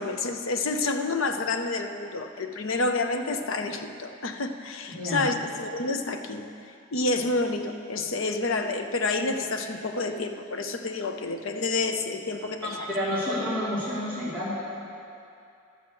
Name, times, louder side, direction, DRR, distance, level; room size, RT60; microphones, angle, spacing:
voice 1, 0.0-6.5 6.9-12.9, left 3 dB, 65° left, 7 dB, 0.7 m, -29 dB
voice 2, 4.9-5.2 12.9-14.6, left 1 dB, 5° left, -13 dB, 2.4 m, -29 dB
12.0 x 5.9 x 7.9 m, 2.6 s
head